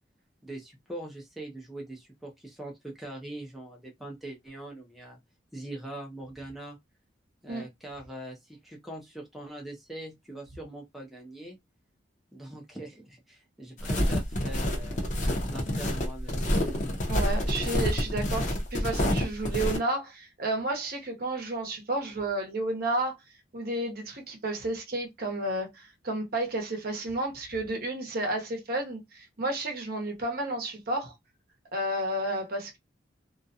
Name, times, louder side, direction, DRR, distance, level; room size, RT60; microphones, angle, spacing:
voice 1, 0.4-5.2 5.5-6.8 7.4-11.6 12.3-15.1 15.5-16.4, right 1 dB, ahead, 0.5 m, -42 dB
sound 1, 13.8-19.8, equal, 40° left, 0.6 m, -28 dB
voice 2, 17.1-23.1 23.5-31.1 31.7-32.8, right 1 dB, 50° right, 0.8 m, -31 dB
2.4 x 2.1 x 2.7 m
head